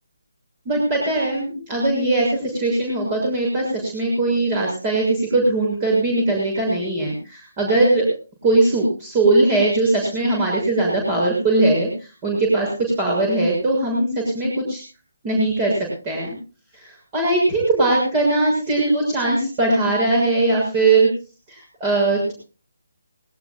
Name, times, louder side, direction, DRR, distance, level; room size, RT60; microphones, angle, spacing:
voice 1, 0.6-8.1 8.4-14.8 15.2-16.3 16.7-21.1 21.5-22.3, right 2 dB, 25° right, -1 dB, 6.7 m, -20 dB
20.0 x 18.0 x 2.3 m, 0.35 s
figure-of-eight pair, 155°, 0 cm